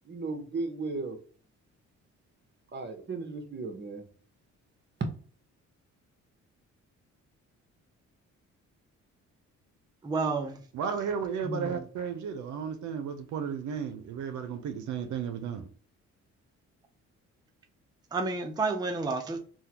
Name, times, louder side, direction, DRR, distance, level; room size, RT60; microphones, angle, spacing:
voice 1, 0.0-1.2 2.7-4.1 5.0-5.1, right 3 dB, 35° right, 0.9 m, -35 dB
voice 2, 10.0-10.6 11.4-11.9 18.1-19.4, right 3 dB, 15° right, 0.5 m, -30 dB
voice 3, 10.7-15.7, right 7 dB, 70° right, 0.6 m, -34 dB
3.5 x 2.2 x 2.8 m
cardioid pair, 90°, 30 cm